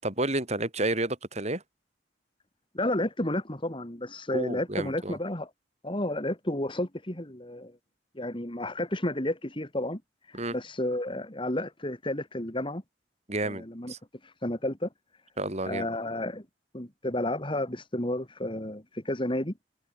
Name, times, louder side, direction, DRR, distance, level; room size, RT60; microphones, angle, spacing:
voice 1, 0.0-1.6 4.3-5.2 10.3-10.6 13.3-14.0 15.4-15.9, right 2 dB, 35° right, 7.0 m, -30 dB
voice 2, 2.7-5.5 5.8-7.8 8.1-10.0 10.3-12.8 13.4-13.9 14.2-14.9 15.6-16.4 16.7-19.5, left 1 dB, 30° left, 3.2 m, -31 dB
head